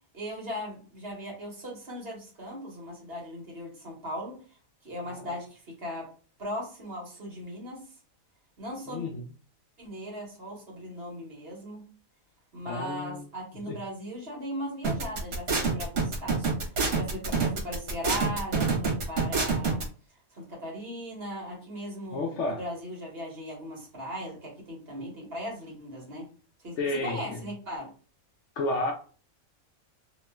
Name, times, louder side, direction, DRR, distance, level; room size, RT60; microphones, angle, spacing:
voice 1, 0.1-4.3 4.8-6.1 6.4-7.8 8.6-9.1 9.8-11.8 12.5-16.5 17.0-19.9 20.3-22.2 22.5-26.2 26.6-27.9, equal, 45° right, -2 dB, 1.5 m, -38 dB
voice 2, 8.9-9.2 12.7-13.3 13.7-13.8 22.1-22.6 26.8-27.4 28.6-28.9, left 2 dB, 65° left, 2 dB, 0.8 m, -31 dB
sound 1, 14.8-19.8, right 4 dB, 65° right, 1.4 m, -26 dB
3.0 x 3.0 x 2.2 m, 0.39 s
omnidirectional pair, 1.5 m